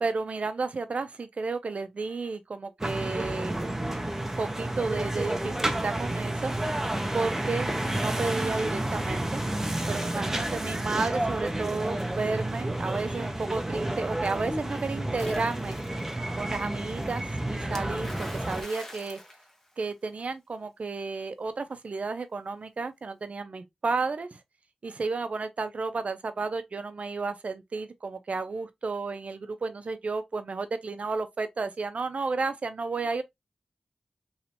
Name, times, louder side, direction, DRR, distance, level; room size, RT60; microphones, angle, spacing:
voice 1, 0.0-4.1 4.4-6.7 7.1-9.4 9.9-15.8 16.3-19.2 19.8-24.4 24.8-33.2, right 4 dB, 65° right, 0.5 m, -32 dB
sound 1, 2.8-18.6, right 1 dB, 15° right, 0.7 m, -30 dB
Splash splatter, 15.1-16.1 17.8-20.2, left 1 dB, 15° left, 0.9 m, -44 dB
3.1 x 2.9 x 2.5 m
wide cardioid pair, 80°, 2 cm